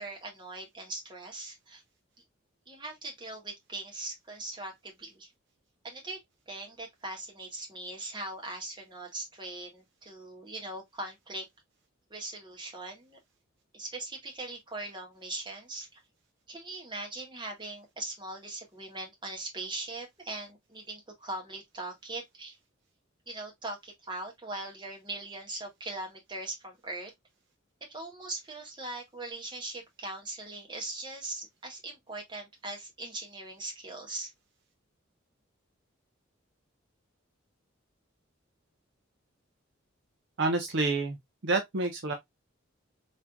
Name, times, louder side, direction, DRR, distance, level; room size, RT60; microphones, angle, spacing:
voice 1, 0.0-1.8 2.7-5.3 5.8-6.2 6.5-11.5 12.1-13.2 13.7-16.0 16.5-22.6 23.3-27.1 27.8-34.3, right 2 dB, 25° right, 1.5 m, -40 dB
voice 2, 40.4-42.1, right 3 dB, 60° right, 0.8 m, -29 dB
4.3 x 3.5 x 2.3 m
head